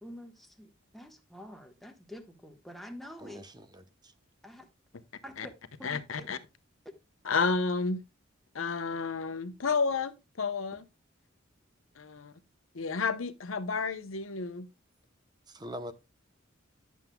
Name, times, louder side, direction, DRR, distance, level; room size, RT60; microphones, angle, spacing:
voice 1, 0.0-3.4 4.4-4.7 5.2-5.5 5.8-6.3, equal, ahead, 1.3 m, -47 dB
voice 2, 3.2-4.1 15.5-15.9, equal, 20° right, 0.7 m, -43 dB
voice 3, 5.8-6.4 7.2-8.0 8.5-10.8 12.0-12.3 12.7-14.7, left 4 dB, 90° left, 0.9 m, -31 dB
11.0 x 7.3 x 2.2 m
head